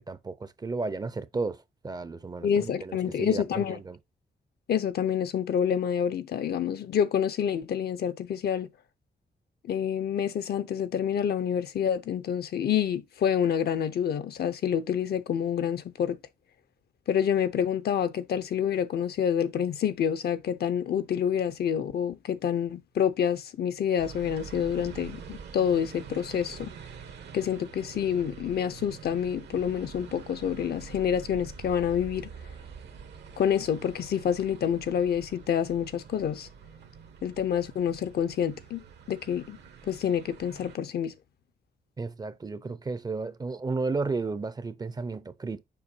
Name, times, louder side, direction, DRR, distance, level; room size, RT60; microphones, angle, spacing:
voice 1, 0.1-4.0 42.0-45.6, right 3 dB, 25° right, 0.5 m, -33 dB
voice 2, 2.4-3.8 4.7-8.7 9.6-16.2 17.1-26.7 27.3-32.3 33.4-36.5 37.2-39.6 39.9-41.1, left 8 dB, 70° left, 0.7 m, -28 dB
sound 1, 24.0-40.8, right 6 dB, 85° right, 1.3 m, -46 dB
6.9 x 5.2 x 2.7 m
cardioid pair, 120°, 17 cm